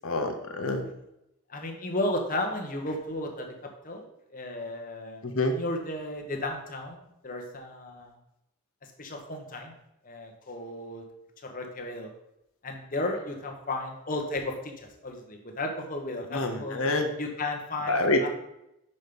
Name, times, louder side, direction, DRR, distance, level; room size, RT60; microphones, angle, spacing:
voice 1, 0.0-0.9 5.2-5.6 16.3-17.1 17.9-18.3, left 2 dB, 65° left, 5 dB, 0.9 m, -27 dB
voice 2, 1.5-3.5 3.8-4.1 4.3-8.1 9.0-9.7 10.0-11.0 11.4-12.1 12.6-16.8 17.2-18.3, left 2 dB, 40° left, 2 dB, 1.2 m, -34 dB
6.3 x 5.5 x 5.2 m, 0.85 s
head